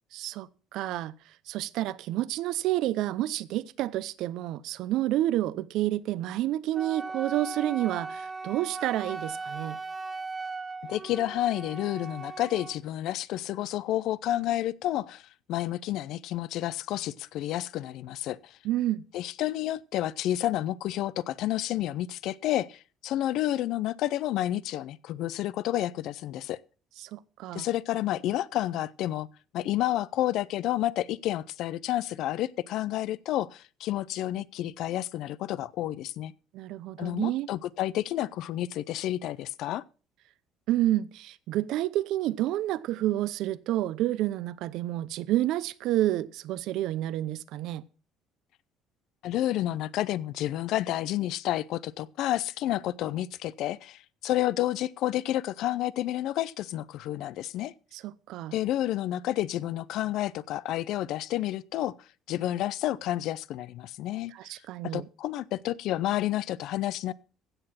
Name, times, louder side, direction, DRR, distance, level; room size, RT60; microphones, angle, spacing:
voice 1, 0.1-1.1 1.5-9.8 18.6-19.0 27.0-27.7 36.5-37.5 40.7-47.8 57.9-58.5 64.3-65.0, right 14 dB, 70° right, 0.7 m, -29 dB
Wind instrument woodwind instrument, 6.7-12.8, right 4 dB, 20° right, 1.0 m, -38 dB
voice 2, 10.9-18.6 19.1-26.6 27.5-29.3 29.5-36.3 37.0-39.8 49.2-57.7 58.5-62.0 62.3-64.3 64.8-67.1, left 13 dB, 70° left, 0.5 m, -30 dB
15.5 x 6.7 x 5.8 m
cardioid pair, 120°, 0 cm